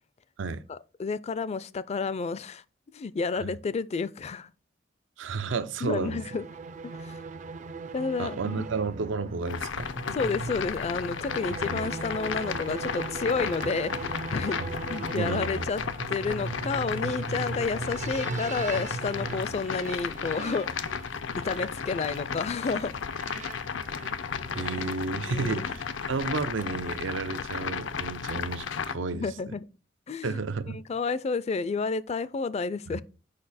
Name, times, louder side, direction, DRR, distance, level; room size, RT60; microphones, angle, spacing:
voice 1, 0.7-2.6 2.9-4.5 5.8-6.5 6.8-7.2 7.9-8.7 10.1-14.6 14.9-15.8 16.1-20.8 21.4-22.9 25.3-25.7 29.1-29.7 30.1-30.4 30.7-33.0, left 4 dB, 35° left, 0.4 m, -31 dB
voice 2, 5.2-6.2 8.2-9.9 11.5-11.9 13.6-13.7 14.6-14.7 15.1-15.7 24.5-25.8 26.1-29.5 30.2-30.8 32.9-33.0, right 4 dB, 85° right, 0.6 m, -32 dB
sound 1, 5.8-24.9, right 4 dB, 40° right, 0.4 m, -39 dB
sound 2, 9.5-28.9, left 6 dB, 85° left, 0.6 m, -34 dB
6.6 x 5.2 x 4.1 m
head